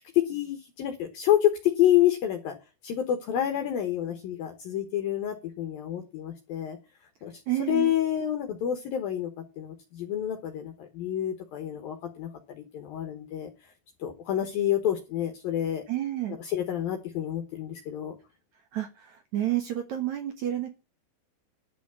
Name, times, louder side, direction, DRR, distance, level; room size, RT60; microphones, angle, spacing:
voice 1, 0.1-2.6 2.8-6.8 7.2-7.3 7.6-9.3 9.6-13.5 14.0-15.8 16.4-18.2, left 11 dB, 65° left, 5 dB, 2.6 m, -28 dB
voice 2, 7.5-7.9 15.9-16.4 18.7-20.7, right 13 dB, 75° right, 6 dB, 1.7 m, -30 dB
11.0 x 6.1 x 8.3 m, 0.29 s
omnidirectional pair, 5.3 m